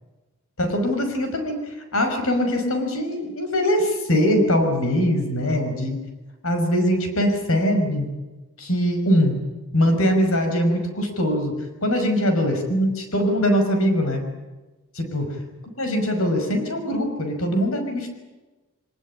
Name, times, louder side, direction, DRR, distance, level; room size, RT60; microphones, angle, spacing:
voice 1, 0.6-1.6 1.9-6.0 6.4-8.1 8.6-9.4 9.7-11.6 11.8-14.2 15.0-15.3 15.8-18.1, equal, 75° left, 5 dB, 5.5 m, -22 dB
23.5 x 20.0 x 9.8 m, 1.1 s
head